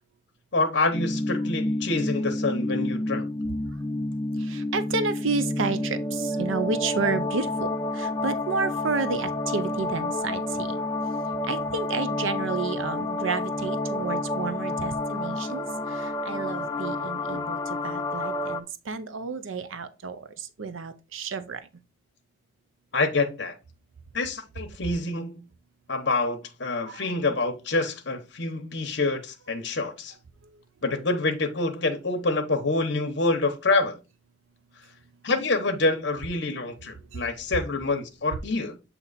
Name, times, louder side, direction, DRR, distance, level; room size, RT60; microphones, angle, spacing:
voice 1, 0.5-3.3 22.9-23.5 24.1-25.4 25.9-30.2 30.8-34.0 35.2-38.8, left 3 dB, 65° left, 0.9 m, -26 dB
sound 1, 0.9-18.6, left 2 dB, 20° left, 0.4 m, -29 dB
voice 2, 4.4-10.8 11.4-21.6 26.9-27.1 37.1-37.2, right 4 dB, 90° right, 0.6 m, -31 dB
8.1 x 2.9 x 4.0 m
head